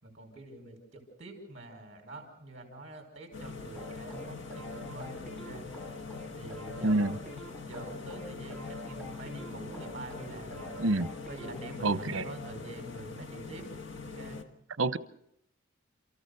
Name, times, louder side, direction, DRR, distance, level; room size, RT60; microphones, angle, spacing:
voice 1, 0.0-6.0 6.4-7.2 7.7-10.8 11.3-13.7 14.0-14.4, right 2 dB, 35° right, 3 dB, 5.2 m, -45 dB
sound 1, 3.3-14.4, left 4 dB, 65° left, 1.4 m, -43 dB
sound 2, 3.7-11.7, equal, 5° left, 2.5 m, -47 dB
voice 2, 11.8-12.3 14.8-15.0, right 2 dB, 70° right, 16 dB, 0.8 m, -27 dB
29.0 x 14.0 x 6.8 m, 0.74 s
head